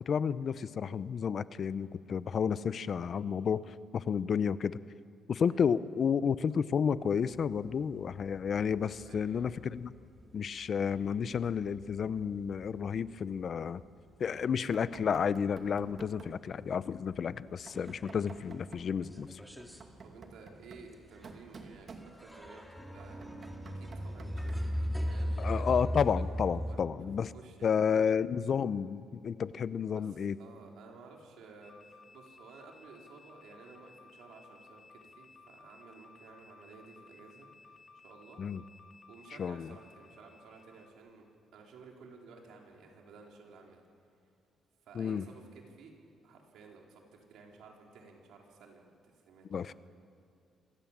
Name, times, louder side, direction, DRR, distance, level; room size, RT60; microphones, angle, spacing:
voice 1, 0.1-4.8 5.3-9.9 10.3-13.8 14.2-19.4 25.4-27.3 27.6-30.4 38.4-38.6 39.4-39.8 44.9-45.2 49.5-49.7, left 7 dB, 50° left, 16 dB, 0.7 m, -31 dB
sound 1, 7.3-14.0 14.3-15.4 15.8-15.9 16.3-16.4 16.6-18.5 18.8-26.8, equal, ahead, 2.4 m, -39 dB
voice 2, 9.0-9.5 14.2-14.4 20.0-23.4 23.7-24.6 25.0-25.7 26.6-26.9 27.3-27.7 29.9-38.4 39.1-41.3 41.5-43.8 44.8-45.9 46.2-49.7, right 4 dB, 80° right, 1 dB, 4.1 m, -54 dB
Knock, 14.7-16.5 17.7-18.9 19.6-22.5 23.0-24.8, right 4 dB, 50° right, 2.4 m, -52 dB
sound 2, 31.6-40.9, left 4 dB, 35° left, 2.6 m, -57 dB
26.5 x 18.0 x 7.4 m, 2.4 s
cardioid pair, 90°, 0 cm